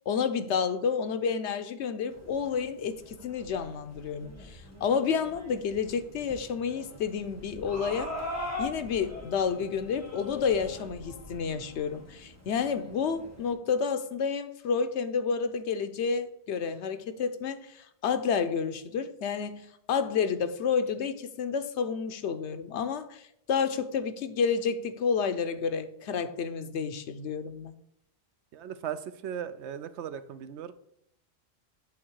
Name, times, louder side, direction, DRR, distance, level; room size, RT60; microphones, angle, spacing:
voice 1, 0.1-8.1 8.6-23.2 23.5-27.8, left 6 dB, 90° left, 1.0 m, -30 dB
sound 1, 2.1-13.5, left 2 dB, 15° left, 1.8 m, -42 dB
voice 2, 28.5-30.7, right 9 dB, 80° right, 0.9 m, -37 dB
8.4 x 3.6 x 4.6 m
omnidirectional pair, 1.1 m